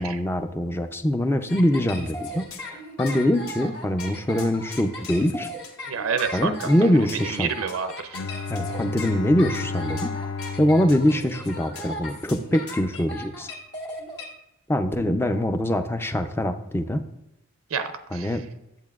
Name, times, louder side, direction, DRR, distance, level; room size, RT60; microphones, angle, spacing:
voice 1, 0.0-5.5 6.3-7.5 8.5-10.1 10.6-13.5 14.7-17.0 18.1-18.4, left 1 dB, 10° left, 8 dB, 0.4 m, -23 dB
sound 1, 1.5-14.2, left 1 dB, 50° left, 1.8 m, -37 dB
sound 2, 2.5-2.7 3.1-3.2 3.5-3.7 4.0-5.3 5.6-5.8 6.2-6.3 6.6-7.3 7.7-7.8 8.1-8.7 9.0-9.3 9.5-10.6 10.9-11.3 11.8-11.9 12.3-12.8, left 7 dB, 85° left, 0.9 m, -44 dB
voice 2, 5.9-6.5 7.2-8.2 17.7-18.3, right 6 dB, 80° right, 8 dB, 0.5 m, -28 dB
Bowed string instrument, 8.1-12.1, left 4 dB, 70° left, 0.5 m, -33 dB
10.5 x 8.2 x 2.4 m, 0.90 s
head